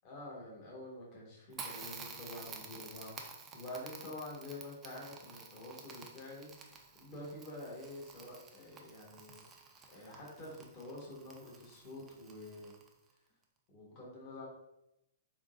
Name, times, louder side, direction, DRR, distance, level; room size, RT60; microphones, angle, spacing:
voice 1, 0.0-9.4 9.9-12.8 13.7-14.5, left 1 dB, 35° left, -4 dB, 1.2 m, -48 dB
Crackle, 1.5-13.1, right 4 dB, 15° right, 0.5 m, -51 dB
3.7 x 3.7 x 2.5 m, 0.85 s
hypercardioid pair, 140°, 0 cm